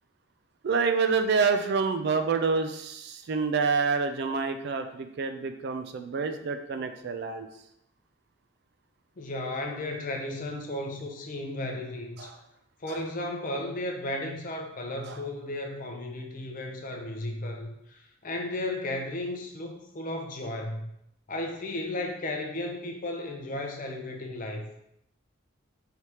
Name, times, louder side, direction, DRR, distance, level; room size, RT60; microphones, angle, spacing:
voice 1, 0.6-7.5 12.2-12.4 12.9-13.1 15.0-15.2, right 5 dB, 50° right, 7 dB, 0.3 m, -28 dB
voice 2, 9.2-12.3 12.8-20.9 21.3-24.7, left 1 dB, 40° left, 3 dB, 0.5 m, -34 dB
4.6 x 3.3 x 2.9 m, 0.79 s
head